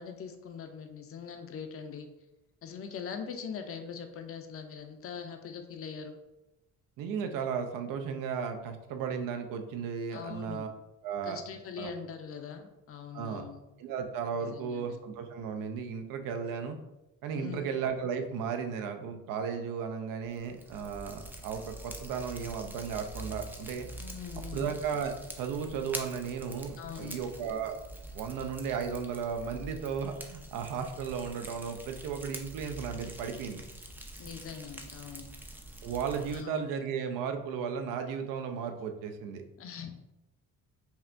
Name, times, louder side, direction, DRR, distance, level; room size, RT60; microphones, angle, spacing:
voice 1, 0.0-2.1 2.6-6.2 10.1-10.6 11.2-13.6 14.4-15.0 17.3-17.6 24.0-24.7 26.8-27.2 34.2-35.3 36.3-36.6 39.6-39.9, left 6 dB, 45° left, 6 dB, 0.5 m, -42 dB
voice 2, 7.0-10.7 11.0-11.4 11.8-11.9 13.1-13.5 13.8-16.8 17.2-23.9 24.5-27.8 28.1-33.6 35.8-39.4, right 6 dB, 80° right, 6 dB, 0.6 m, -35 dB
Fire, 20.2-36.4, right 1 dB, 5° right, 0.3 m, -45 dB
5.5 x 2.2 x 2.5 m, 0.95 s
cardioid pair, 115°, 32 cm